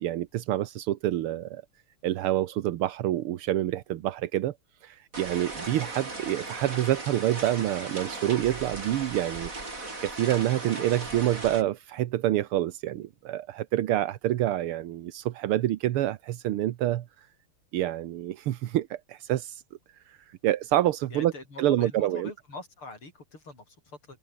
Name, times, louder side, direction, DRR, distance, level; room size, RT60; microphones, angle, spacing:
voice 1, 0.0-1.6 2.0-4.5 4.8-9.7 10.0-17.3 17.7-19.6 19.9-21.3 21.6-22.3, right 13 dB, 80° right, 1.8 m, -27 dB
sound 1, 5.1-11.6, right 2 dB, 35° right, 4.9 m, -37 dB
voice 2, 21.1-24.2, left 2 dB, 75° left, 8.2 m, -43 dB
omnidirectional pair, 2.4 m